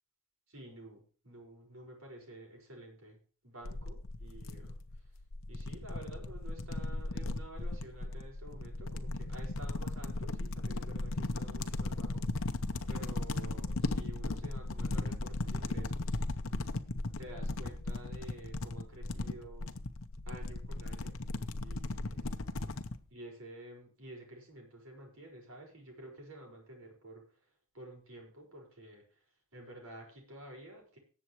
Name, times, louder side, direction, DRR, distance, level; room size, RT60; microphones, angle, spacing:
voice 1, 0.5-3.2 3.4-4.7 5.5-12.2 12.9-16.1 17.2-19.7 20.3-21.1 21.6-22.3 23.1-27.2 27.7-29.2 29.5-31.0, right 1 dB, 70° right, 1 dB, 5.6 m, -50 dB
sound 1, 3.6-23.0, left 2 dB, 65° left, 0.8 m, -37 dB
19.0 x 7.5 x 3.2 m, 0.39 s
head